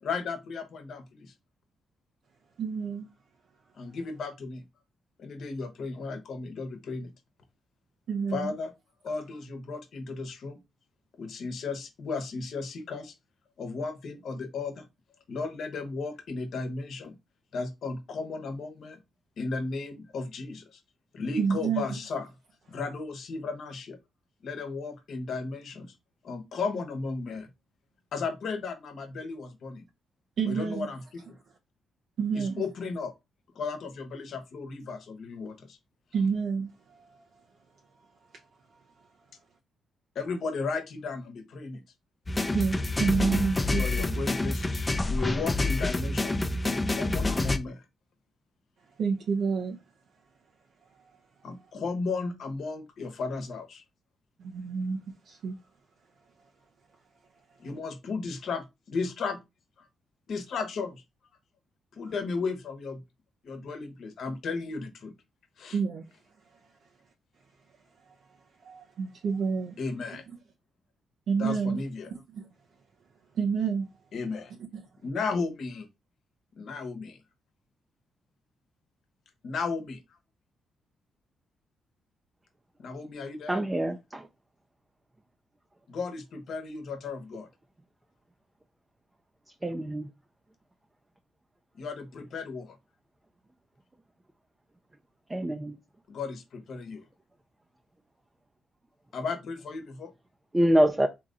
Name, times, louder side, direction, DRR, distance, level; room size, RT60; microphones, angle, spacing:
voice 1, 0.0-1.3 3.7-4.6 5.2-7.1 8.3-8.7 9.0-10.6 11.2-13.1 13.6-14.8 15.3-17.1 17.5-19.0 19.4-20.8 21.1-22.3 22.7-24.0 24.4-25.9 26.2-27.5 28.1-29.8 30.4-31.2 32.3-33.1 33.5-35.8 40.1-41.8 43.8-47.8 51.4-53.8 57.6-59.4 59.8-59.9 60.3-61.0 62.0-63.0 63.4-65.1 65.6-65.8 69.8-70.2 71.4-72.1 74.1-74.5 75.0-75.9 76.6-77.2 79.4-80.0 82.8-83.6 85.9-87.5 91.8-92.8 96.1-97.0 99.1-100.1, left 4 dB, 65° left, 1.0 m, -35 dB
voice 2, 2.6-3.1 8.1-8.5 21.4-21.9 30.4-30.9 32.2-32.6 36.1-37.0 42.5-44.1 49.0-49.8 54.4-55.6 65.7-66.1 68.1-68.2 68.6-69.8 71.3-71.8 72.1-72.5 73.3-73.9 74.7-74.8, right 5 dB, 70° right, 0.8 m, -29 dB
sound 1, 42.3-47.6, left 2 dB, 25° left, 0.6 m, -28 dB
voice 3, 83.5-84.3 89.6-90.1 95.3-95.8 100.5-101.1, right 1 dB, 20° right, 0.6 m, -25 dB
3.6 x 2.9 x 3.8 m
supercardioid pair, 55°, 0 cm